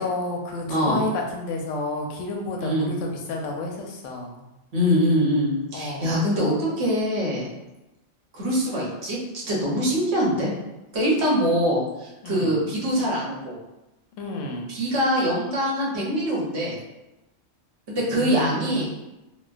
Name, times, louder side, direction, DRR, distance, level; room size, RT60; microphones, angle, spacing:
voice 1, 0.0-4.4 5.7-6.2 12.2-12.5 14.2-14.7 18.1-18.9, left 2 dB, 90° left, 1 dB, 0.9 m, -30 dB
voice 2, 0.7-1.0 2.6-2.9 4.7-7.5 8.3-9.2 9.5-10.5 10.9-13.5 14.7-16.8 17.9-18.9, equal, 65° right, -5 dB, 1.1 m, -23 dB
3.0 x 2.2 x 2.4 m, 0.97 s
omnidirectional pair, 1.2 m